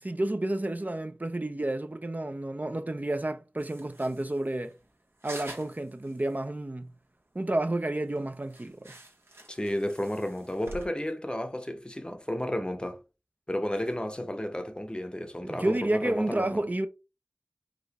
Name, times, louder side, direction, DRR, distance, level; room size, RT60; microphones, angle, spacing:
voice 1, 0.0-4.7 5.2-6.9 7.3-8.9 15.4-16.9, right 1 dB, 40° right, 0.5 m, -30 dB
sound 1, 3.6-6.6 6.8-6.9 7.3-7.4 7.8-7.9 8.1-10.9, right 2 dB, 80° right, 1.4 m, -48 dB
voice 2, 9.5-13.0 13.5-16.6, left 1 dB, 20° left, 0.7 m, -32 dB
4.8 x 2.4 x 4.0 m
wide cardioid pair, 45°, 4 cm